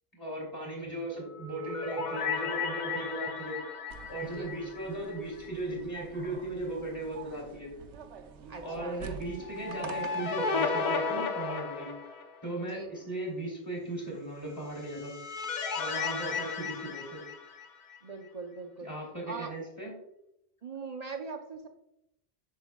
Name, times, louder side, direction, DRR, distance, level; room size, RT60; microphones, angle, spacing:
voice 1, 0.2-3.6 4.1-7.7 8.6-11.9 12.4-15.2 15.7-17.2 18.8-19.9, right 2 dB, 20° left, -3 dB, 2.7 m, -37 dB
sound 1, 1.2-5.5 5.8-5.9 9.4-12.5 14.6-18.0, left 5 dB, 50° left, 0.7 m, -34 dB
sound 2, 3.9-10.5, right 6 dB, 85° right, 1.0 m, -47 dB
voice 2, 8.5-9.0 12.6-12.9 16.0-16.3 18.0-18.9 19.3-19.5 20.6-21.7, right 4 dB, 45° right, 4 dB, 0.7 m, -41 dB
8.2 x 6.4 x 2.3 m, 0.82 s
omnidirectional pair, 1.1 m